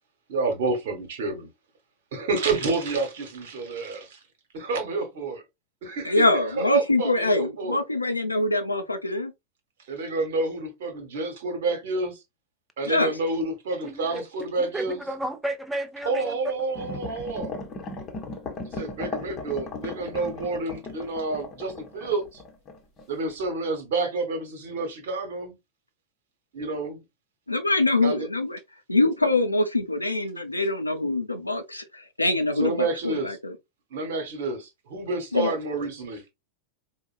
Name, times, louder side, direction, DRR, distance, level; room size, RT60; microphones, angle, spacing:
voice 1, 0.3-1.5 2.1-4.2 4.5-5.4 5.8-6.3 6.6-7.8 9.9-12.2 12.8-15.0 16.0-17.5 18.7-22.4 23.1-25.5 26.5-27.0 28.0-28.3 32.6-33.4 33.9-36.3, right 3 dB, 55° right, 1.2 m, -29 dB
voice 2, 6.0-9.3 12.8-13.1 27.5-28.6 28.9-33.5 35.3-35.5, left 2 dB, 85° left, 0.6 m, -24 dB
voice 3, 13.8-16.4, right 1 dB, 5° right, 0.7 m, -33 dB
sound 1, 16.7-23.1 23.4-23.5, left 3 dB, 30° left, 1.0 m, -37 dB
4.6 x 2.2 x 2.5 m
figure-of-eight pair, 90°, 0 cm